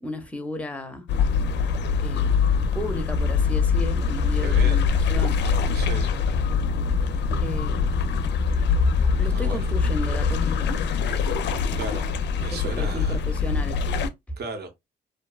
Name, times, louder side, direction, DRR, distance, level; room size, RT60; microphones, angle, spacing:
voice 1, 0.0-1.1 2.0-2.3 2.7-5.4 7.4-7.8 8.2-8.3 9.2-10.7 12.5-13.8, left 1 dB, 5° left, 0.6 m, -34 dB
sound 1, 1.1-14.1, left 5 dB, 60° left, 0.4 m, -23 dB
voice 2, 4.4-4.8 5.7-6.1 9.2-9.7 11.8-12.1 12.3-13.2 14.4-14.7, right 4 dB, 55° right, 0.7 m, -35 dB
2.6 x 2.3 x 2.2 m
cardioid pair, 90°, 20 cm